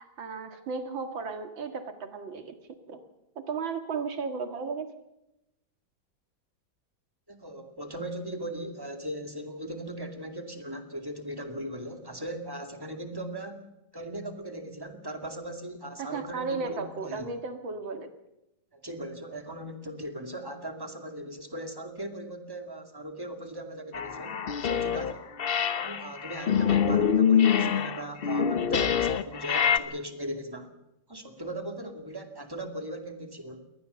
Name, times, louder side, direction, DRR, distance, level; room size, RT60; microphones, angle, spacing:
voice 1, 0.0-2.6 2.9-3.0 3.4-4.9 16.0-18.1, right 4 dB, 85° right, 7 dB, 2.7 m, -34 dB
voice 2, 7.3-13.7 13.9-17.3 18.7-25.3 25.8-30.7 31.1-33.6, right 1 dB, 10° right, 5 dB, 2.3 m, -38 dB
sound 1, 23.9-25.1 25.4-29.8, left 7 dB, 55° left, 0.6 m, -25 dB
22.5 x 18.5 x 6.9 m, 0.89 s
omnidirectional pair, 2.1 m